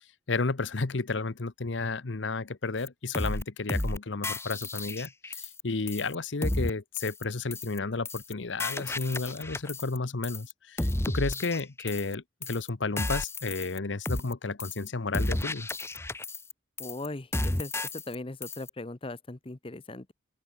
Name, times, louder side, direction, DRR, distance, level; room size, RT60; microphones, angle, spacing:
voice 1, 0.3-15.7, left 3 dB, 80° left, 1.0 m, -32 dB
sound 1, 2.9-3.0 3.1-3.4 3.7-4.0 4.2-5.6 5.9-6.2 6.4-6.7 7.0-7.2 7.5-7.8 8.1-8.3 8.6-10.0 10.2-10.5 10.8-12.2 12.4-12.7 13.0-13.8 14.1-14.3 14.6-14.9 15.1-16.5 16.8-17.1 17.3-18.2 18.4-18.7, left 1 dB, 15° left, 1.1 m, -32 dB
voice 2, 16.8-20.1, left 2 dB, 30° left, 0.9 m, -39 dB
open air
head